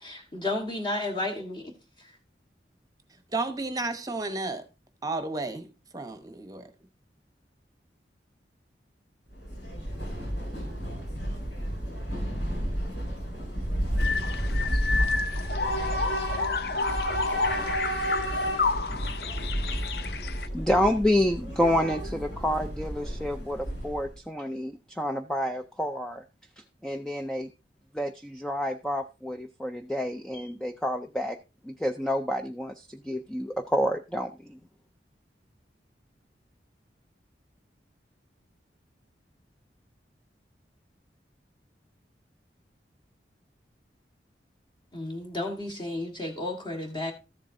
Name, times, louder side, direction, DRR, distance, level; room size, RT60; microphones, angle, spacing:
voice 1, 0.0-1.7 44.9-47.1, left 2 dB, 25° left, 1.4 m, -32 dB
voice 2, 3.3-4.6 5.0-5.7 5.9-6.7, right 2 dB, 20° right, 0.9 m, -32 dB
Train / Subway metro underground, 9.3-24.2, right 1 dB, 90° left, 4.9 m, -31 dB
sound 1, 14.0-20.5, left 5 dB, 60° left, 0.5 m, -31 dB
voice 3, 20.5-26.2 26.8-27.5 27.9-31.4 31.6-34.6, equal, 5° left, 0.4 m, -29 dB
13.5 x 7.4 x 2.6 m
head